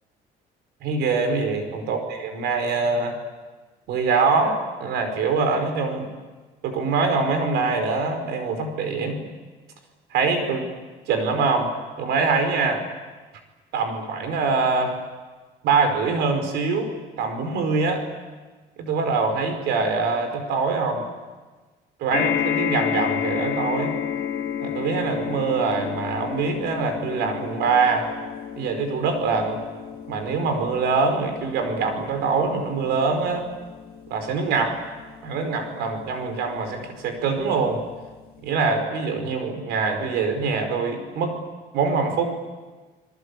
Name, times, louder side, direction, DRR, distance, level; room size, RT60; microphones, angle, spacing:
voice 1, 0.8-3.2 3.9-6.1 6.6-9.2 10.1-10.7 11.1-11.7 12.0-12.8 13.7-14.9 15.6-16.9 17.2-18.0 18.8-21.1 22.0-23.9 24.6-28.1 28.6-29.6 30.1-33.5 34.1-34.8 35.2-37.8 38.4-41.4 41.7-42.3, right 4 dB, 85° right, 7 dB, 5.1 m, -24 dB
sound 1, 22.1-36.7 37.4-37.5 37.8-37.9, left 9 dB, 65° left, 3.3 m, -31 dB
28.0 x 22.0 x 8.5 m, 1.3 s
cardioid pair, 110°, 17 cm